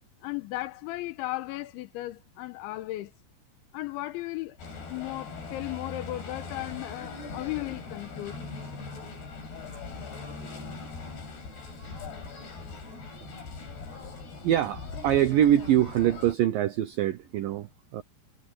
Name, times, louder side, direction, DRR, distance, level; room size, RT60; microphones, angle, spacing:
voice 1, 0.2-3.1 3.7-8.4, left 17 dB, 90° left, 3.3 m, -36 dB
sound 1, 4.6-16.4, left 4 dB, 60° left, 8.6 m, -40 dB
voice 2, 14.4-18.0, right 11 dB, 80° right, 2.0 m, -24 dB
omnidirectional pair, 5.3 m